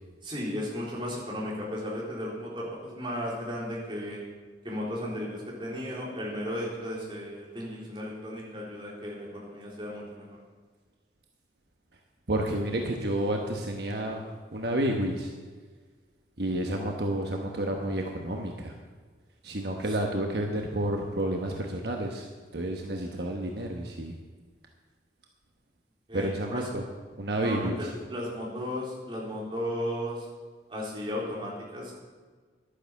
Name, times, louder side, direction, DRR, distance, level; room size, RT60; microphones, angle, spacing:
voice 1, 0.2-4.2 4.6-10.4 26.1-26.7 27.4-30.3 30.7-31.9, equal, 30° right, -4 dB, 3.7 m, -35 dB
voice 2, 12.3-14.3 14.5-15.3 16.4-18.7 19.4-24.1 26.1-26.8 27.2-27.8, right 1 dB, 65° right, 1 dB, 1.2 m, -30 dB
11.5 x 9.9 x 7.1 m, 1.5 s
head